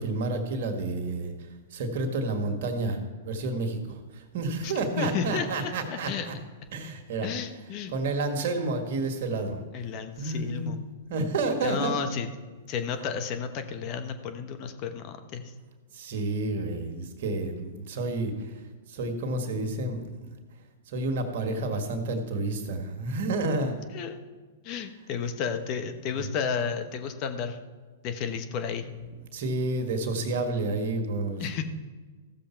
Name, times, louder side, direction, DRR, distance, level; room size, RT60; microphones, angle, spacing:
voice 1, 0.0-1.3 1.7-6.3 6.7-7.3 7.9-9.6 10.2-10.7 11.1-12.0 15.9-18.6 18.9-20.3 20.9-23.8 29.3-31.4, right 2 dB, 60° right, 5 dB, 1.8 m, -30 dB
voice 2, 4.6-6.3 7.2-7.9 9.7-10.8 11.6-12.3 12.7-15.5 23.9-24.2 24.6-27.6 28.0-28.9 31.4-31.6, left 6 dB, 45° left, 8 dB, 1.0 m, -32 dB
15.0 x 7.1 x 4.5 m, 1.4 s
hypercardioid pair, 115°, 0 cm